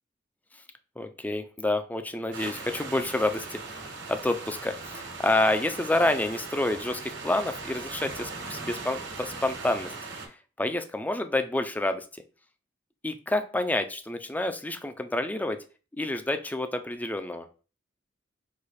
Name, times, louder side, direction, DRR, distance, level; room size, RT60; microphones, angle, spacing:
voice 1, 1.0-9.9 10.6-12.0 13.0-15.6 15.9-17.5, left 2 dB, 10° left, 8 dB, 0.4 m, -28 dB
sound 1, 2.3-10.3, right 4 dB, 75° right, 1.4 m, -39 dB
4.8 x 2.3 x 4.1 m, 0.35 s
head